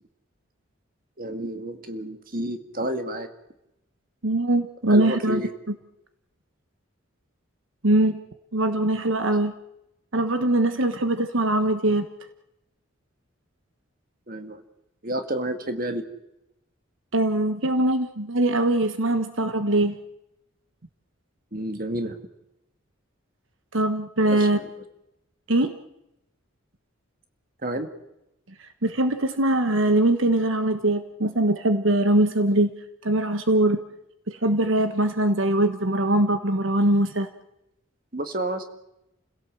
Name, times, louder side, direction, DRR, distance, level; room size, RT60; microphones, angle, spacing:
voice 1, 1.2-3.3 4.9-5.5 14.3-14.6 15.0-16.0 21.5-22.1 24.3-24.4 27.6-27.9 38.1-38.6, right 1 dB, 45° right, 7 dB, 2.0 m, -30 dB
voice 2, 4.2-5.4 5.7-5.8 7.8-8.2 8.5-9.5 10.1-12.1 17.1-19.9 23.7-24.6 25.5-25.7 28.8-32.7 33.0-33.8 34.3-37.3, right 1 dB, 70° right, 9 dB, 1.3 m, -22 dB
30.0 x 17.0 x 7.6 m, 0.87 s
head